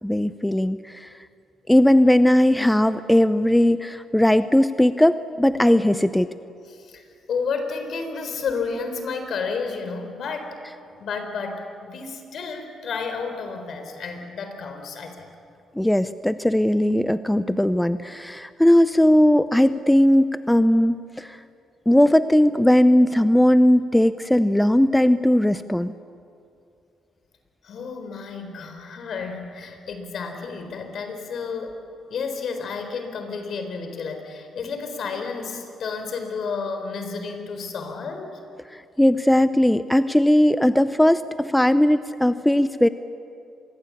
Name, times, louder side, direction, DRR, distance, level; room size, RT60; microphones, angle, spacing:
voice 1, 0.0-1.1 1.7-6.3 15.8-21.4 21.9-25.9 39.0-42.9, left 1 dB, 5° left, 12 dB, 0.7 m, -18 dB
voice 2, 6.7-10.6 10.9-15.3 27.6-31.8 32.1-38.4, left 5 dB, 60° left, 6 dB, 4.2 m, -31 dB
26.0 x 22.0 x 8.6 m, 2.6 s
cardioid pair, 90°, 0 cm